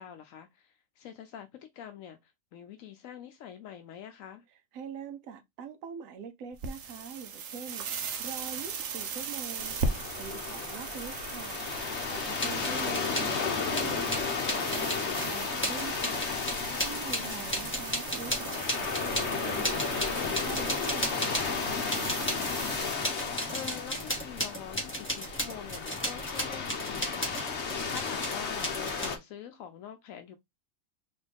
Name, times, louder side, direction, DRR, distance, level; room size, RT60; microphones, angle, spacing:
voice 1, 0.0-4.4 12.5-13.0 17.2-17.5 22.4-30.4, left 9 dB, 80° left, 1.0 m, -45 dB
voice 2, 4.7-11.6 12.1-16.2 16.8-21.4, right 6 dB, 85° right, 1.1 m, -44 dB
sound 1, 6.5-22.9, right 5 dB, 65° right, 1.0 m, -39 dB
sound 2, 9.6-29.2, left 5 dB, 60° left, 1.2 m, -34 dB
sound 3, 12.4-13.3 13.7-21.6 21.9-29.1, equal, 10° left, 1.5 m, -35 dB
4.2 x 3.0 x 3.4 m
omnidirectional pair, 1.4 m